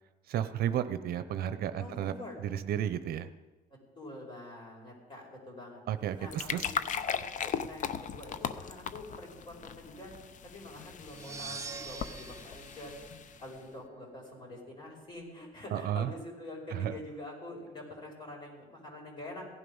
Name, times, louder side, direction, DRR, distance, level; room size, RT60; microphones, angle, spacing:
voice 1, 0.3-2.1 2.4-3.3 5.9-6.6 15.7-16.1 16.7-16.9, right 10 dB, 65° right, 11 dB, 0.7 m, -32 dB
voice 2, 1.8-2.4 3.9-5.8 6.2-10.1 10.4-12.9 13.4-19.5, left 1 dB, 30° left, -1 dB, 5.2 m, -46 dB
sound 1, 6.0-13.6, left 7 dB, 50° left, 0.7 m, -38 dB
sound 2, 11.0-13.9, right 5 dB, 20° right, 0.6 m, -45 dB
17.0 x 11.0 x 5.5 m, 1.2 s
cardioid pair, 110°, 17 cm